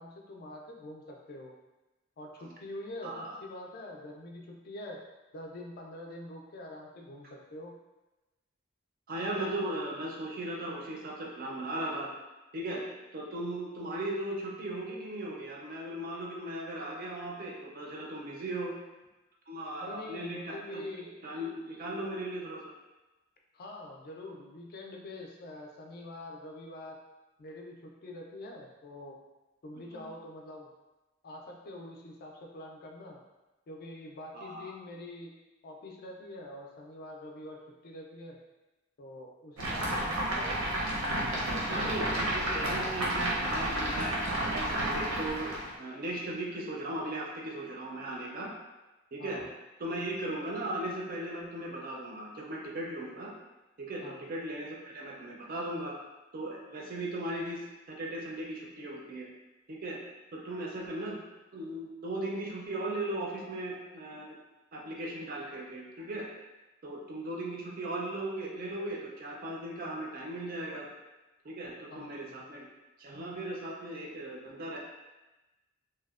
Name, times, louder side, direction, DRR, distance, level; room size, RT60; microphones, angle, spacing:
voice 1, 0.0-1.5 2.2-5.0 5.3-7.7 18.3-18.4 19.8-21.1 23.5-27.0 27.4-29.2 29.6-30.7 31.2-33.2 33.7-35.3 35.6-38.4 39.0-40.6 41.3-43.0 49.2-49.5 54.0-54.3 71.9-72.4, left 1 dB, 45° left, 0 dB, 0.3 m, -45 dB
voice 2, 3.0-3.4 9.1-12.1 12.5-12.8 13.1-18.7 19.5-22.7 29.9-30.1 34.3-34.7 41.7-48.5 49.1-49.4 49.8-53.3 53.8-56.0 56.3-59.3 59.7-60.0 60.3-61.3 61.5-64.4 64.7-66.3 66.8-70.9 71.4-72.6 73.0-74.8, right 1 dB, 45° right, -2 dB, 0.4 m, -37 dB
sound 1, 39.6-45.7, right 1 dB, 85° right, 0.6 m, -31 dB
2.7 x 2.1 x 2.3 m, 1.1 s
head